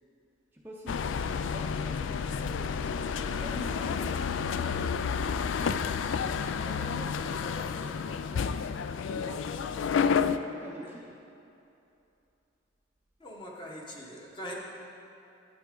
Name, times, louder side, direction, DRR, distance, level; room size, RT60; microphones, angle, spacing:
voice 1, 0.5-2.7 3.2-8.7 9.0-10.2 10.5-11.2, equal, 10° right, -4 dB, 0.6 m, -47 dB
sound 1, 0.9-10.4, left 6 dB, 75° left, 0.3 m, -30 dB
voice 2, 13.2-14.5, equal, 25° left, -2 dB, 1.1 m, -42 dB
11.0 x 9.4 x 3.8 m, 2.7 s
head